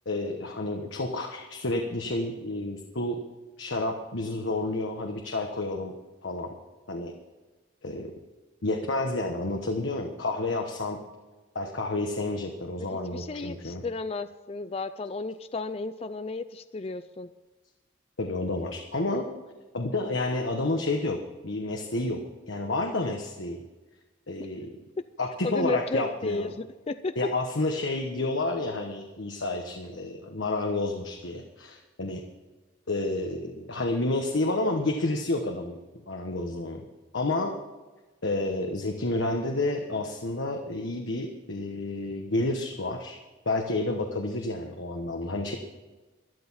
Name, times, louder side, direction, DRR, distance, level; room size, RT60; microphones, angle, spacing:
voice 1, 0.0-3.2 3.6-5.9 6.2-6.5 6.9-7.2 7.8-8.1 8.6-11.0 11.5-13.8 18.2-19.3 19.7-23.6 24.3-24.7 25.2-26.5 27.2-32.2 32.9-36.8 37.1-37.6 38.2-43.2 43.4-45.6, left 2 dB, 75° left, 3 dB, 1.2 m, -30 dB
voice 2, 12.8-17.3 24.4-24.5 25.0-25.1 25.4-27.2, left 3 dB, 30° left, 12 dB, 0.4 m, -33 dB
12.5 x 11.5 x 5.7 m, 1.2 s
head